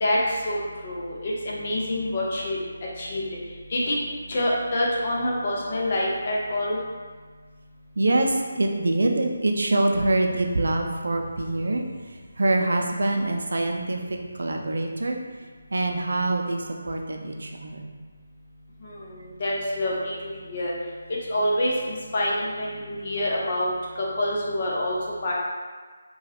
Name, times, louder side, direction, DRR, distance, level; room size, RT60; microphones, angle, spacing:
voice 1, 0.0-2.6 3.0-3.2 3.7-4.0 4.3-6.8 18.8-19.1 19.4-20.7 21.3-25.0 25.2-25.3, left 1 dB, 45° left, -4 dB, 0.6 m, -26 dB
voice 2, 8.0-15.2 15.7-17.9, right 2 dB, 70° right, 2 dB, 0.4 m, -25 dB
2.9 x 2.3 x 2.8 m, 1.5 s
figure-of-eight pair, 160°, 0 cm